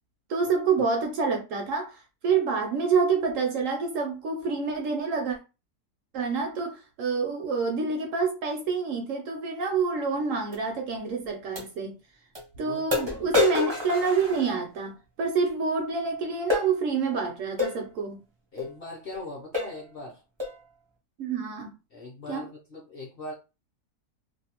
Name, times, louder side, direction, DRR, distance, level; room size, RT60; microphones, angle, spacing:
voice 1, 0.3-5.4 6.1-12.0 12.6-18.2 21.2-21.7 22.3-22.5, right 5 dB, 65° right, 0.8 m, -27 dB
sound 1, 10.5-10.6 11.5-11.7 12.3-12.4 12.9-14.9 16.5-16.7 17.6-17.8 18.6-18.7 19.1-19.2 19.5-19.8 20.4-20.6, left 3 dB, 30° right, 0.5 m, -27 dB
voice 2, 12.6-13.3 18.5-20.2 21.9-23.3, left 2 dB, 55° left, 0.7 m, -40 dB
2.6 x 2.2 x 2.8 m
omnidirectional pair, 1.6 m